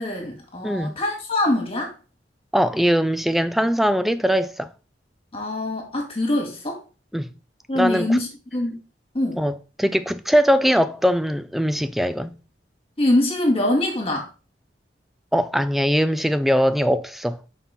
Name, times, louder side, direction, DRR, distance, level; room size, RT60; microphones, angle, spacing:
voice 1, 0.0-1.9 5.3-6.8 7.7-8.8 9.1-9.4 13.0-14.3, left 1 dB, 30° left, 2.0 m, -23 dB
voice 2, 0.6-1.0 2.5-4.7 7.1-7.3 7.8-8.2 9.4-12.3 15.3-17.4, equal, ahead, 0.3 m, -21 dB
5.4 x 4.5 x 5.6 m
head